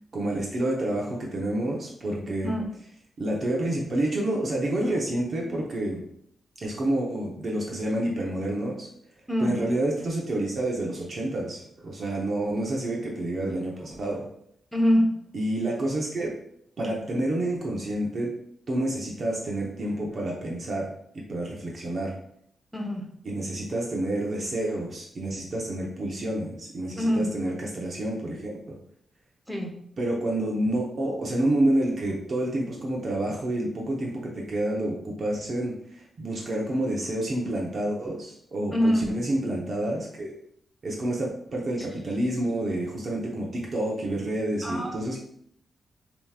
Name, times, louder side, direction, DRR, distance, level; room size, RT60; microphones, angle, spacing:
voice 1, 0.1-2.5 3.2-6.0 6.6-8.9 9.4-14.3 15.3-16.3 16.8-18.3 18.7-20.9 21.3-22.1 23.2-28.8 30.0-40.3 40.8-45.2, right 1 dB, 50° right, -2 dB, 0.9 m, -28 dB
voice 2, 14.7-15.1 22.7-23.1 27.0-27.3 29.5-29.7 38.7-39.2 44.6-45.0, equal, ahead, 0 dB, 1.0 m, -24 dB
6.8 x 3.0 x 2.4 m, 0.70 s
wide cardioid pair, 110°, 0 cm